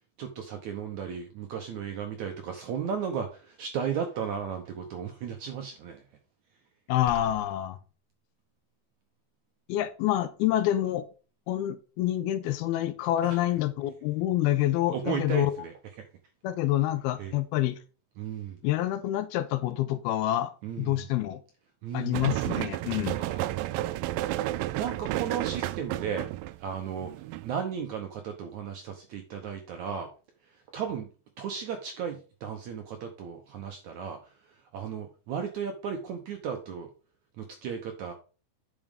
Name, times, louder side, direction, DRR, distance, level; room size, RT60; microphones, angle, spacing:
voice 1, 0.2-6.0 13.2-13.4 14.9-15.7 17.2-17.3 18.2-18.6 20.6-21.1 21.8-22.3 23.1-23.5 24.5-26.3 26.6-27.1 27.4-30.1 30.7-31.1 31.4-34.2 34.7-36.9 37.4-38.1, right 7 dB, 75° right, 1.8 m, -35 dB
voice 2, 6.9-7.8 9.7-11.1 11.5-15.5 16.4-17.8 18.6-20.5 20.8-21.4 21.9-23.2, left 13 dB, 85° left, 2.7 m, -27 dB
sound 1, 7.1-7.5, left 3 dB, 60° left, 3.4 m, -40 dB
sound 2, 22.1-27.5, right 16 dB, 90° right, 1.9 m, -31 dB
8.9 x 6.1 x 3.6 m
omnidirectional pair, 4.5 m